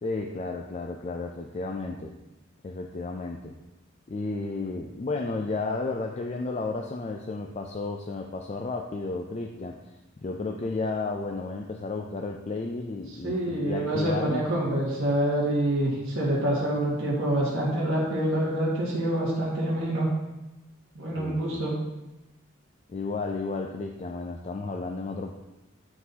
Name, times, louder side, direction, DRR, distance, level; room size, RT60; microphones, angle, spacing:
voice 1, 0.0-2.1 2.6-3.5 4.1-9.8 10.2-14.5 21.2-21.6 22.9-25.3, left 3 dB, 30° left, 2 dB, 0.3 m, -32 dB
voice 2, 13.2-20.1 20.9-21.7, right 1 dB, 75° right, -6 dB, 1.5 m, -26 dB
9.5 x 3.9 x 2.8 m, 0.99 s
head